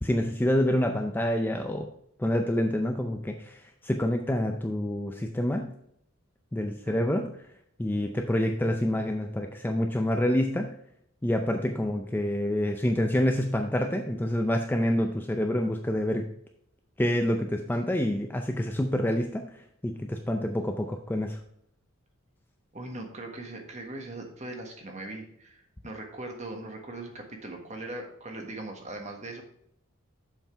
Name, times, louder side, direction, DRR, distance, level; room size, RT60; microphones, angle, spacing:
voice 1, 0.0-1.9 2.2-5.7 6.5-7.3 7.8-10.7 11.2-16.2 17.0-19.4 19.8-21.4, left 1 dB, 10° left, 4 dB, 0.4 m, -27 dB
voice 2, 6.9-7.3 22.7-29.4, right 2 dB, 30° right, 3 dB, 1.4 m, -40 dB
7.3 x 5.7 x 4.4 m, 0.73 s
head